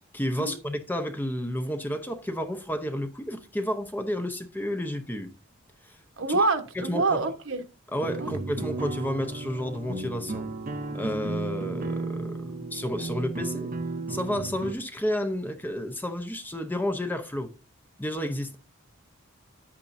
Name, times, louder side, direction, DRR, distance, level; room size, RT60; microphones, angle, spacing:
voice 1, 0.0-5.3 5.8-6.0 6.3-6.5 6.8-7.2 7.9-10.5 10.9-13.7 14.1-17.5 18.0-18.6, equal, 10° left, 0.8 m, -31 dB
voice 2, 6.2-7.6 8.2-8.3, right 3 dB, 65° right, 1.2 m, -26 dB
sound 1, 8.0-14.7, right 3 dB, 40° right, 0.9 m, -34 dB
9.6 x 8.6 x 2.7 m
head